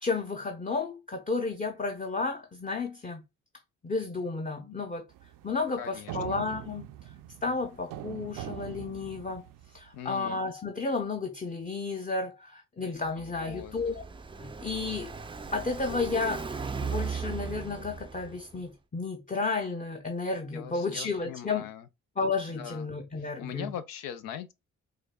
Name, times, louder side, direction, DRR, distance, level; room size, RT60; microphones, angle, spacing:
voice 1, 0.0-3.2 3.8-5.0 5.4-6.9 7.4-9.4 9.7-14.0 14.4-15.1 15.5-16.5 16.8-21.7 22.2-23.7, left 3 dB, 25° left, 0.6 m, -32 dB
sound 1, 5.1-10.0, right 12 dB, 70° right, 0.5 m, -43 dB
voice 2, 5.8-6.4 9.9-10.4 13.2-13.7 20.5-21.9 22.5-22.9 23.2-24.5, left 10 dB, 90° left, 0.5 m, -41 dB
Car passing by, 13.1-18.6, right 5 dB, 15° right, 0.4 m, -37 dB
4.8 x 2.2 x 2.2 m
supercardioid pair, 50°, 33 cm